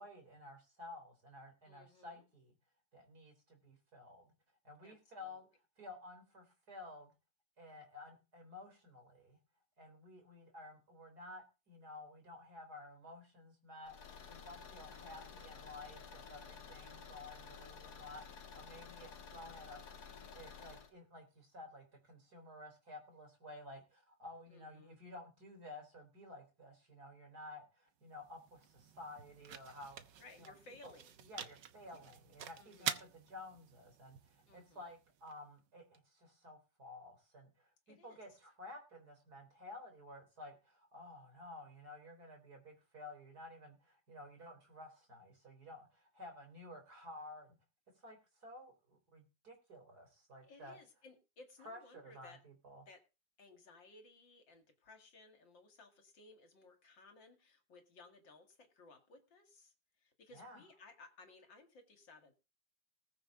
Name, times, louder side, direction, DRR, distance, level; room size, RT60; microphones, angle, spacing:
voice 1, 0.0-2.5 2.9-4.3 4.6-5.5 5.8-7.1 7.6-9.4 9.8-19.9 20.3-30.5 30.8-30.9 31.2-47.6 48.0-50.8 51.6-52.9 60.3-60.6, left 2 dB, 50° right, 4 dB, 4.4 m, -53 dB
voice 2, 1.7-2.2 4.8-5.4 24.5-25.0 30.2-31.2 32.6-33.0 34.5-34.9 37.9-38.2 50.4-52.4 52.9-53.0 53.4-59.7 60.0-62.3, left 3 dB, 70° left, 5 dB, 2.9 m, -60 dB
Car / Engine, 13.8-20.9, left 6 dB, 55° left, 2.0 m, -53 dB
sound 1, 27.9-36.0, right 9 dB, 70° right, 1.6 m, -48 dB
20.0 x 7.1 x 3.9 m, 0.30 s
omnidirectional pair, 2.1 m